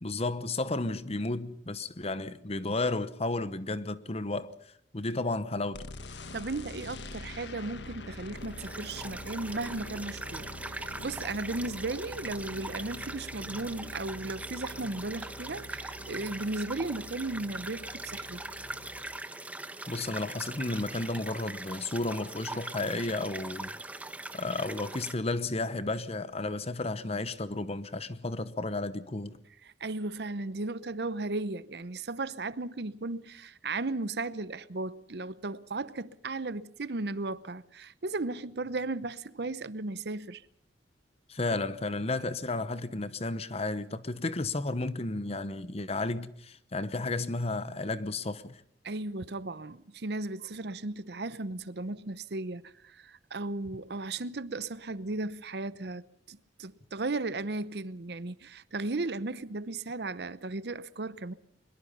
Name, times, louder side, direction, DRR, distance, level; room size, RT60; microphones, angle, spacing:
voice 1, 0.0-4.5 4.9-5.8 19.9-23.7 24.3-29.4 41.3-48.6, left 2 dB, 35° left, 1.0 m, -33 dB
sound 1, 5.7-19.1, left 1 dB, 80° left, 1.6 m, -45 dB
voice 2, 6.3-18.4 29.8-40.4 48.8-61.3, right 2 dB, 65° right, 0.8 m, -36 dB
sound 2, 8.4-25.1, right 2 dB, 10° right, 1.1 m, -41 dB
23.0 x 22.0 x 5.5 m
head